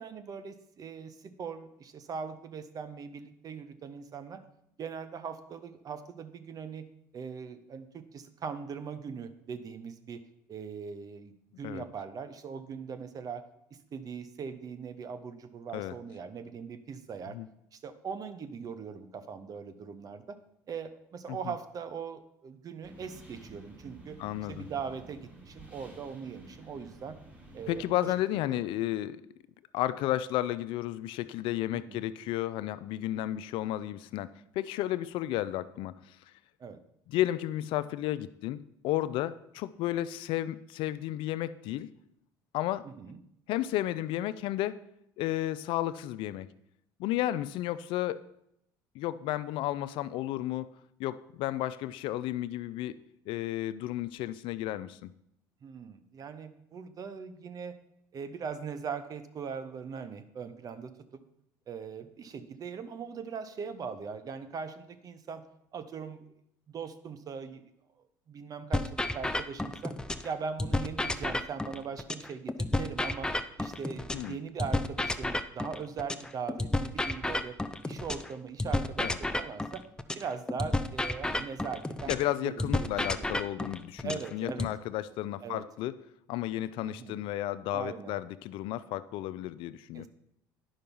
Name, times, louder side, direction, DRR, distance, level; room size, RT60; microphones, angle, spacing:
voice 1, 0.0-4.4 4.8-6.8 7.1-10.2 10.5-13.4 13.9-17.4 17.7-20.4 20.7-24.2 24.5-27.2 27.5-28.1 28.5-28.6 31.9-32.0 36.6-36.8 42.8-43.2 55.6-57.7 58.1-61.2 61.7-65.4 65.7-66.2 66.7-67.6 68.3-69.9 70.2-73.3 73.6-77.6 77.9-79.8 80.1-83.3 84.0-84.7 85.4-85.6 86.8-87.2 87.7-88.2 89.9-90.1, right 6 dB, 40° right, 11 dB, 0.9 m, -40 dB
sound 1, 22.8-27.9, right 2 dB, 15° right, 3.0 m, -51 dB
voice 2, 24.2-24.7 27.7-29.2 29.7-34.3 34.6-36.2 37.1-38.6 38.8-41.9 42.5-42.9 43.5-44.8 45.2-46.5 47.0-48.2 48.9-50.7 51.0-52.9 53.3-55.1 74.1-74.4 79.0-79.2 82.1-86.0 86.3-90.1, left 14 dB, 70° left, 15 dB, 0.4 m, -32 dB
sound 2, 68.7-70.3 70.6-74.3 74.6-78.3 78.6-82.3 82.6-84.7, left 2 dB, 10° left, 0.5 m, -31 dB
10.0 x 5.6 x 5.4 m, 0.77 s
supercardioid pair, 95°, 9 cm